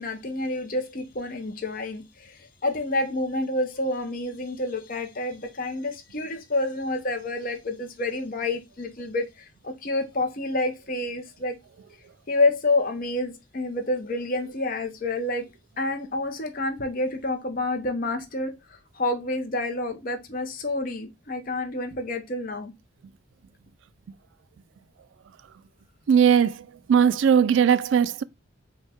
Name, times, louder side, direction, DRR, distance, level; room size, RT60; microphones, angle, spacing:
voice 1, 0.0-11.6 12.3-15.4 15.8-22.7, left 2 dB, 45° left, 0.7 m, -28 dB
voice 2, 26.1-28.2, right 7 dB, 65° right, 0.3 m, -19 dB
5.2 x 2.2 x 3.5 m
head